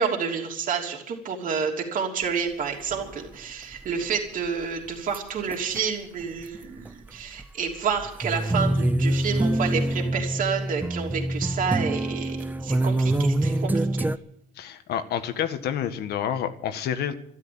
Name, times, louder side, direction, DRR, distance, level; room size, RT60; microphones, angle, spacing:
voice 1, 0.0-14.0, right 6 dB, 55° right, 0 dB, 3.2 m, -29 dB
sound 1, 2.9-3.3 3.7-4.1 5.1-5.2 5.5-5.8 6.2-7.5 7.7-14.2, right 1 dB, 10° right, 0.7 m, -25 dB
voice 2, 14.6-17.1, left 9 dB, 70° left, 10 dB, 1.7 m, -28 dB
12.5 x 12.5 x 8.9 m, 0.71 s
cardioid pair, 110°, 17 cm